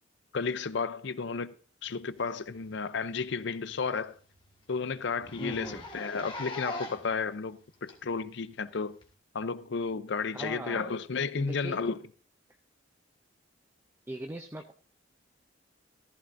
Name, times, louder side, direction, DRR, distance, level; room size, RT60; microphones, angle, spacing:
voice 1, 0.3-1.5 1.8-4.2 4.7-9.0 9.3-12.0, left 5 dB, 65° left, 0.6 m, -33 dB
Zipper (clothing), 2.5-2.7 3.1-3.2 3.6-3.7 4.0-4.1 4.4-4.5 5.2-7.2 7.9-8.0 9.0-9.1, left 1 dB, 25° left, 1.6 m, -40 dB
voice 2, 5.4-5.9 10.3-11.0 11.3-11.8 14.1-14.7, right 1 dB, 10° right, 0.5 m, -40 dB
14.5 x 14.0 x 2.6 m
head